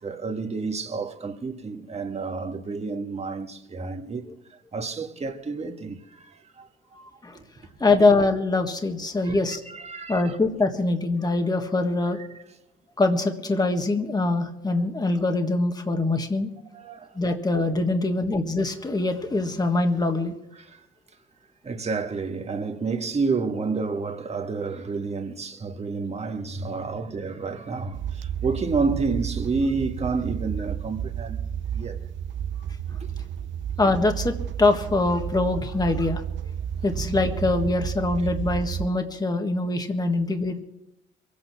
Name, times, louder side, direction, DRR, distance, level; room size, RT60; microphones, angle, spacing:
voice 1, 0.0-6.7 7.3-7.4 9.2-10.4 16.7-17.2 20.5-20.9 21.6-31.4 31.7-32.1 32.9-33.5, right 4 dB, 35° right, 1.7 m, -30 dB
voice 2, 7.8-9.6 10.0-12.2 13.0-16.5 17.1-20.3 33.8-36.2 36.8-40.6, left 2 dB, 20° left, 1.7 m, -23 dB
sound 1, 27.9-38.9, right 9 dB, 70° right, 0.8 m, -32 dB
23.0 x 8.7 x 6.0 m
cardioid pair, 90°, 20 cm